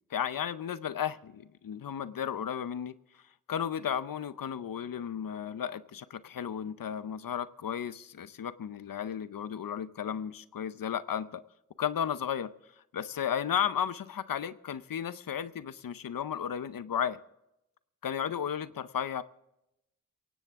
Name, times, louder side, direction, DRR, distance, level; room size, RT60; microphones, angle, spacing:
voice 1, 0.1-2.9 3.5-11.4 11.8-12.5 12.9-17.2 18.0-19.2, left 8 dB, 80° left, 15 dB, 0.7 m, -34 dB
18.0 x 16.5 x 3.6 m, 0.86 s
cardioid pair, 45°, 33 cm